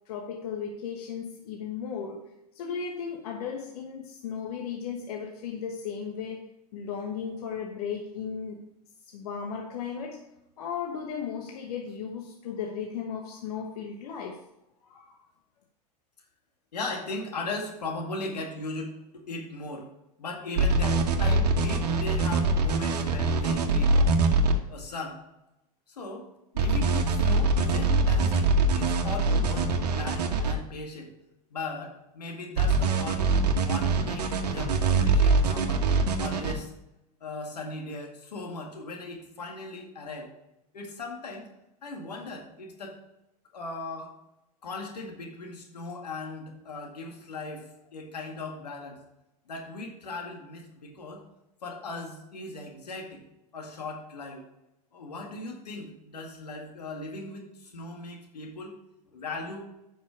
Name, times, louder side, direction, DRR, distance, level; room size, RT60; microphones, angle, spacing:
voice 1, 0.1-6.5 6.7-8.6 9.1-10.3 10.6-14.4 14.8-15.2, left 7 dB, 70° left, 1 dB, 1.2 m, -36 dB
voice 2, 16.7-19.9 20.2-24.1 24.7-25.2 25.9-26.3 26.5-31.1 31.5-35.8 36.2-36.7 37.2-40.3 40.7-41.5 41.8-43.0 43.5-44.1 44.6-49.0 49.5-51.2 51.6-53.2 53.5-54.4 54.9-58.7 59.1-59.6, left 2 dB, 90° left, 1 dB, 2.2 m, -38 dB
sound 1, 20.6-24.5 26.6-30.5 32.6-36.5, right 3 dB, 85° right, 1.3 m, -23 dB
9.8 x 5.8 x 4.9 m, 0.88 s
hypercardioid pair, 100°, 20 cm